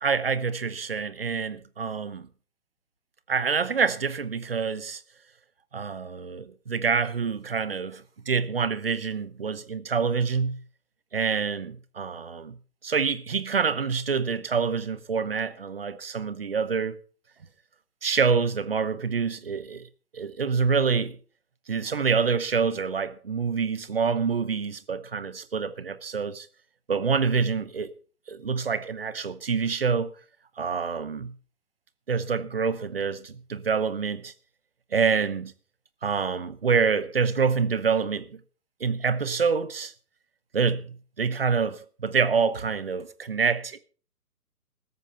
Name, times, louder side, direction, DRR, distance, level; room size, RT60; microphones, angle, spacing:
voice 1, 0.0-2.3 3.3-5.0 5.7-10.6 11.1-12.6 12.8-17.0 18.0-19.9 20.1-21.2 21.7-26.5 26.9-27.9 28.3-30.1 30.6-31.3 32.1-34.3 34.9-35.5 36.0-38.3 38.8-39.9 40.5-43.8, right 5 dB, 40° right, 0.9 m, -26 dB
15.0 x 14.0 x 4.4 m
hypercardioid pair, 175°, 46 cm